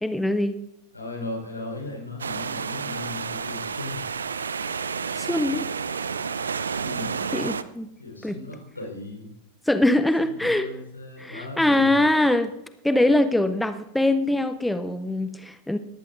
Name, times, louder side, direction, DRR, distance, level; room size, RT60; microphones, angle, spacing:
voice 1, 0.0-0.6 5.2-5.6 7.3-7.9 8.2-8.4 9.7-10.7 11.2-12.5 12.8-15.8, left 1 dB, 5° left, 11 dB, 0.5 m, -22 dB
voice 2, 0.9-4.0 6.8-7.3 8.0-9.3 10.2-12.1, left 2 dB, 80° left, 1 dB, 4.0 m, -37 dB
sound 1, 2.2-7.6, right 6 dB, 70° right, 0.5 m, -30 dB
19.0 x 14.5 x 2.5 m, 0.82 s
figure-of-eight pair, 90°, 0 cm